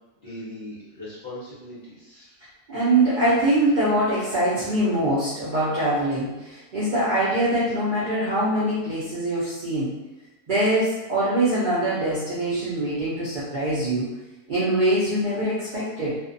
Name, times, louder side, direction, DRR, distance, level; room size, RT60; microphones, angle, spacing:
voice 1, 0.2-2.3, left 1 dB, 45° left, -10 dB, 0.8 m, -39 dB
voice 2, 2.7-9.9 10.5-14.1 14.5-16.2, right 1 dB, 60° right, -9 dB, 0.5 m, -23 dB
2.5 x 2.1 x 2.4 m, 1.0 s
omnidirectional pair, 1.6 m